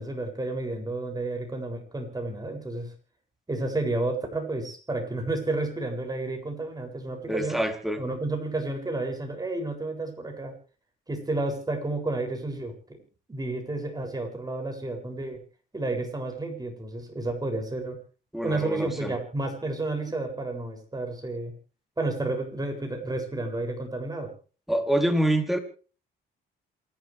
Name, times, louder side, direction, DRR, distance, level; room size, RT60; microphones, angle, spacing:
voice 1, 0.0-2.9 3.5-7.6 8.0-10.5 11.1-13.0 13.3-15.4 15.7-18.0 18.4-21.5 22.0-24.3, right 2 dB, 20° right, 3 dB, 7.6 m, -31 dB
voice 2, 7.3-8.0 18.3-19.1 24.7-25.6, right 1 dB, ahead, 4 dB, 3.9 m, -26 dB
28.0 x 12.5 x 3.6 m, 0.39 s
cardioid pair, 90°, 20 cm